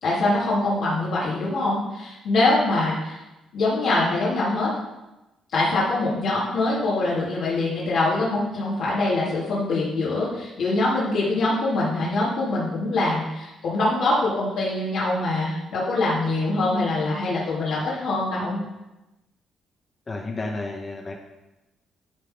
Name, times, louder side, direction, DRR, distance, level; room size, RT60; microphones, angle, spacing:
voice 1, 0.0-3.2 3.5-4.7 5.5-18.6, left 2 dB, 75° left, -8 dB, 2.8 m, -24 dB
voice 2, 20.1-21.2, left 2 dB, 30° left, 1 dB, 1.0 m, -31 dB
12.0 x 4.1 x 5.2 m, 0.99 s
cardioid pair, 90°, 0 cm